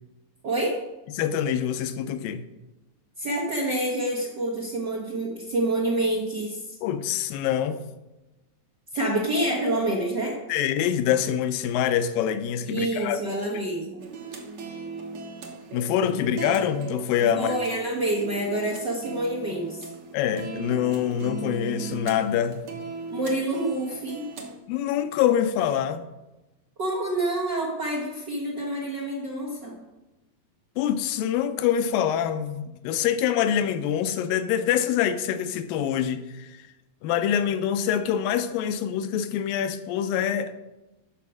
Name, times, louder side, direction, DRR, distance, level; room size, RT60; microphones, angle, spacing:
voice 1, 0.4-0.8 3.2-6.6 8.9-10.3 12.7-14.1 17.3-19.8 23.1-24.3 26.8-29.8, right 1 dB, 90° right, 0.9 m, -27 dB
voice 2, 1.2-2.4 6.8-7.8 10.5-13.2 15.7-17.6 20.1-22.7 24.7-26.1 30.8-36.6 37.0-40.5, left 9 dB, 80° left, 2.2 m, -25 dB
sound 1, 14.0-24.5, right 4 dB, 70° right, 1.3 m, -38 dB
12.0 x 5.1 x 6.1 m
omnidirectional pair, 4.2 m